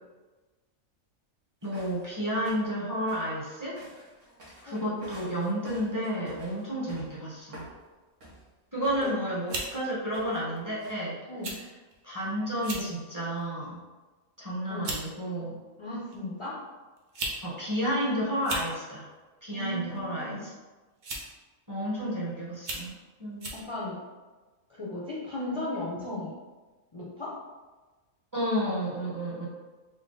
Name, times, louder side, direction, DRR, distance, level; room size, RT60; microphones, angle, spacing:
voice 1, 1.6-3.8 4.6-7.6 8.7-11.2 12.0-13.8 14.4-15.6 17.4-19.1 19.4-20.5 21.7-22.9 23.2-23.4 28.3-29.5, equal, 15° right, -7 dB, 0.8 m, -31 dB
sound 1, 1.6-2.1 2.5-2.7 3.1-7.2 7.5-7.8 8.2-8.5 8.8-9.2 9.5-9.8 10.1-10.4 10.8-10.9, right 1 dB, 65° right, 1.4 m, -47 dB
sound 2, 8.8-9.1 9.5-9.7 10.6-10.7 11.4-11.6 11.9-12.0 12.5-12.9 13.4-13.7 14.4-14.5 14.8-15.0 16.1-16.2 17.0-17.4 17.7-17.8 18.3-18.7 19.9-20.2 21.0-21.4 21.9-22.0 22.6-22.9 23.4-23.6, right 2 dB, 45° right, 0.6 m, -35 dB
voice 2, 15.8-16.6 19.5-20.5 23.5-24.0 24.7-26.3 26.9-27.3, left 1 dB, 40° left, -6 dB, 0.4 m, -36 dB
3.8 x 2.2 x 3.8 m, 1.3 s
omnidirectional pair, 1.4 m